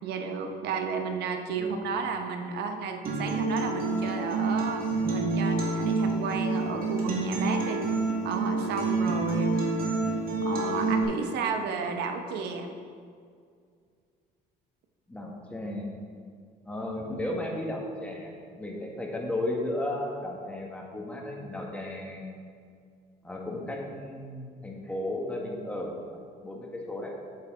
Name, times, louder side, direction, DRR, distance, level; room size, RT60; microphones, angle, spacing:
voice 1, 0.0-4.8 5.1-7.8 8.2-9.7 10.4-12.7, right 5 dB, 80° right, 5 dB, 0.9 m, -32 dB
Acoustic guitar, 3.0-11.0, right 3 dB, 60° right, 2.0 m, -28 dB
voice 2, 15.1-15.9 16.6-18.3 18.6-22.4 23.2-26.0 26.4-27.1, left 1 dB, 10° left, -2 dB, 1.5 m, -34 dB
8.7 x 7.0 x 3.8 m, 2.2 s
cardioid pair, 110°, 17 cm